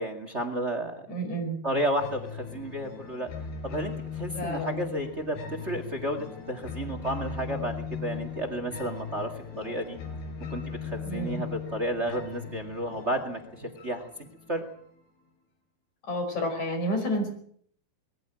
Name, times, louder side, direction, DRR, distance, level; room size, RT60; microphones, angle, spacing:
voice 1, 0.0-1.2 1.6-3.3 3.6-9.3 9.6-10.0 10.5-14.1 14.5-14.6, right 1 dB, 30° right, 9 dB, 1.3 m, -32 dB
voice 2, 1.1-1.6 4.3-4.7 11.1-11.4 16.1-17.3, equal, 45° left, 4 dB, 6.4 m, -30 dB
sound 1, 2.0-15.0, left 6 dB, 85° left, 5.4 m, -39 dB
21.5 x 14.5 x 9.0 m, 0.62 s
omnidirectional pair, 4.4 m